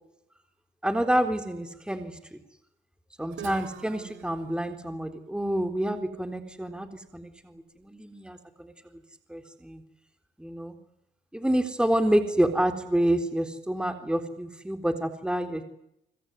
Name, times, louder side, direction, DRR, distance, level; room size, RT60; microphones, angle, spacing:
voice 1, 0.8-2.4 3.2-8.7 9.3-9.8 10.4-10.7 11.3-15.6, right 1 dB, 5° right, 7 dB, 3.9 m, -28 dB
Guitar, 3.3-7.1, right 9 dB, 80° right, 4.1 m, -47 dB
25.5 x 24.0 x 9.7 m, 0.78 s
cardioid pair, 90°, 20 cm